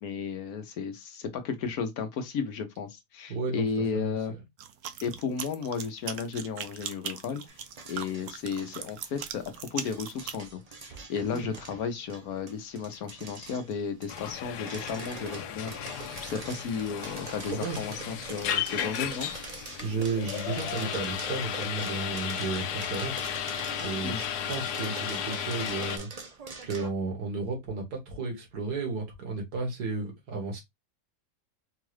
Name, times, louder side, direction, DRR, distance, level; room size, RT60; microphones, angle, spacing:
voice 1, 0.0-4.3 5.0-7.4 7.9-19.3 24.0-24.2, left 6 dB, 70° left, 1.3 m, -34 dB
voice 2, 3.3-3.7 3.9-4.4 11.3-11.5 17.5-17.8 19.8-23.3 23.8-24.2 24.5-26.1 26.6-30.6, right 3 dB, 80° right, 2.0 m, -33 dB
sound 1, 4.6-10.4, right 8 dB, 65° right, 0.9 m, -39 dB
sound 2, 7.5-26.9, right 4 dB, 40° right, 0.5 m, -45 dB
sound 3, 14.1-26.0, left 9 dB, 85° left, 1.2 m, -34 dB
4.6 x 2.5 x 3.2 m
omnidirectional pair, 1.7 m